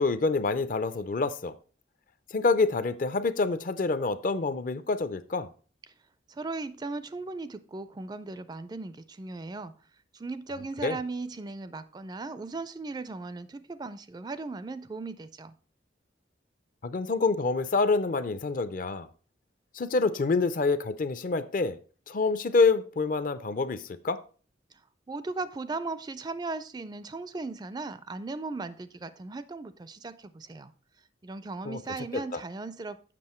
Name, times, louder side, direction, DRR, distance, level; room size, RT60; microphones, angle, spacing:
voice 1, 0.0-1.6 2.3-5.5 10.8-11.0 16.8-19.1 19.7-21.8 22.1-24.2 31.6-31.8 32.1-32.4, left 3 dB, 45° left, 14 dB, 0.5 m, -27 dB
voice 2, 6.3-9.7 10.2-15.5 25.1-30.7 31.2-33.1, right 3 dB, 20° right, 14 dB, 0.4 m, -37 dB
7.6 x 6.1 x 4.3 m, 0.39 s
head